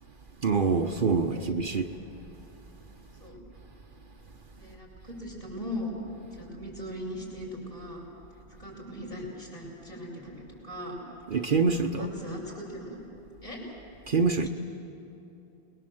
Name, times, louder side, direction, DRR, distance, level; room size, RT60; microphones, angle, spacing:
voice 1, 0.4-1.9 11.3-12.1 14.1-14.5, right 4 dB, 50° right, 5 dB, 1.0 m, -25 dB
voice 2, 4.6-5.9 6.3-8.0 8.6-11.0 11.7-13.0 13.4-13.8 14.4-14.5, equal, 35° left, -4 dB, 6.8 m, -39 dB
28.5 x 21.0 x 7.8 m, 2.9 s
omnidirectional pair, 1.1 m